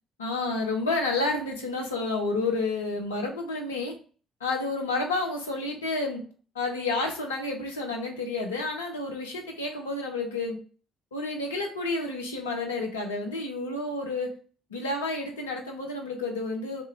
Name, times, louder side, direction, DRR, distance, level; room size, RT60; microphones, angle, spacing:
voice 1, 0.2-3.9 4.4-6.2 6.5-10.6 11.1-14.4 14.7-16.8, left 3 dB, 85° left, 2 dB, 0.7 m, -30 dB
3.4 x 3.1 x 3.2 m, 0.40 s
figure-of-eight pair, 45°, 0 cm